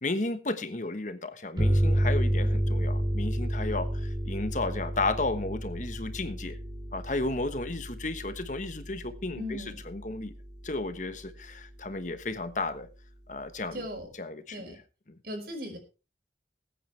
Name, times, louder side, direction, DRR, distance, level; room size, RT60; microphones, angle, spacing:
voice 1, 0.0-6.6 6.9-10.3 10.6-12.9 13.3-13.9 14.1-14.8 15.1-15.2, left 2 dB, 45° left, 1.2 m, -33 dB
sound 1, 1.6-10.9, right 1 dB, 25° right, 3.6 m, -30 dB
voice 2, 9.4-9.8 13.7-14.1 14.5-14.8 15.2-15.8, left 1 dB, 55° right, 5.3 m, -37 dB
20.5 x 9.1 x 3.3 m
head